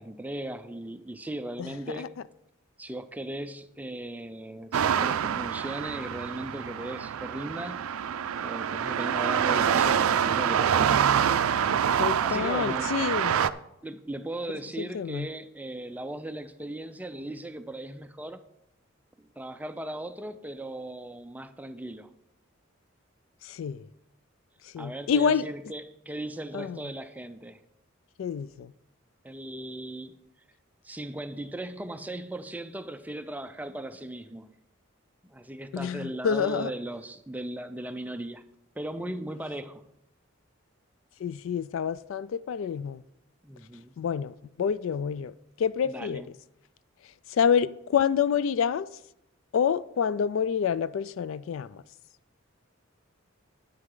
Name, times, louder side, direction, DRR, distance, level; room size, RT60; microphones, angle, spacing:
voice 1, 0.0-2.1 2.8-7.8 8.4-11.3 12.2-13.0 13.8-18.4 19.2-22.1 24.8-27.6 29.2-30.2 30.8-34.5 35.2-38.4 38.8-39.8 43.4-43.9 45.8-46.3, right 1 dB, 10° right, 0.4 m, -37 dB
voice 2, 1.6-2.1 12.0-13.4 14.8-15.3 23.4-23.9 24.6-25.4 26.5-26.8 28.2-28.7 35.7-36.7 41.2-43.0 44.0-46.2 47.3-48.9 49.5-51.8, left 7 dB, 65° left, 0.3 m, -28 dB
sound 1, 4.7-13.5, right 8 dB, 85° right, 0.4 m, -26 dB
9.6 x 9.5 x 3.8 m
head